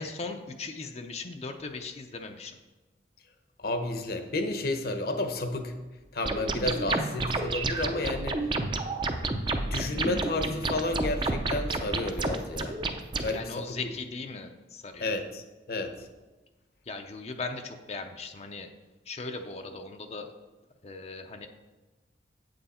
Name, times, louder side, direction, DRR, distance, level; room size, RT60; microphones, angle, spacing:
voice 1, 0.0-2.6 13.3-15.1 16.9-18.7 19.1-20.4 20.8-21.5, left 3 dB, 35° left, 5 dB, 0.5 m, -38 dB
voice 2, 3.6-5.8 6.1-8.4 9.6-12.8 13.2-13.8 15.0-16.1, left 2 dB, 55° left, 6 dB, 0.9 m, -31 dB
sound 1, 6.3-13.3, right 2 dB, 25° right, 0.5 m, -30 dB
8.5 x 7.8 x 4.2 m, 1.2 s
head